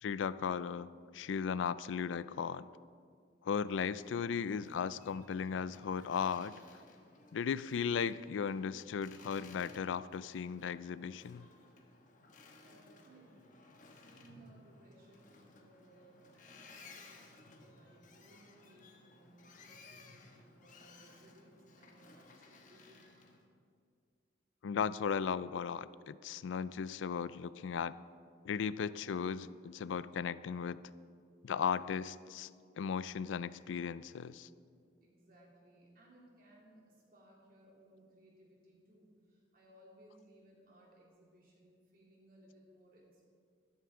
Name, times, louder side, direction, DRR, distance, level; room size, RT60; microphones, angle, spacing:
voice 1, 0.0-2.7 3.4-6.5 7.3-11.5 24.6-28.0 28.4-30.8 31.4-32.5 32.8-34.5, left 6 dB, 80° left, 17 dB, 0.4 m, -36 dB
Boat Water vehicle, 3.6-23.4, left 3 dB, 40° left, 1.1 m, -59 dB
voice 2, 12.6-13.6 13.9-23.1 35.0-43.3, right 1 dB, 45° right, -3 dB, 2.8 m, -63 dB
12.5 x 12.5 x 3.7 m, 2.2 s
head